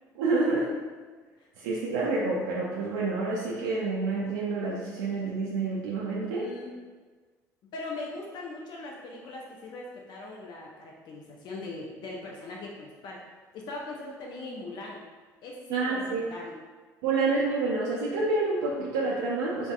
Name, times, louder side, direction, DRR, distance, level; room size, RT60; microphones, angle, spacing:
voice 1, 0.2-0.8 1.6-6.5 15.7-16.2 17.0-19.7, right 3 dB, 75° right, -5 dB, 0.4 m, -28 dB
voice 2, 1.4-1.8 6.3-6.7 7.7-13.2 13.5-15.0 15.4-16.6, left 2 dB, 50° left, -2 dB, 0.4 m, -40 dB
3.4 x 2.1 x 2.3 m, 1.4 s
hypercardioid pair, 60°, 10 cm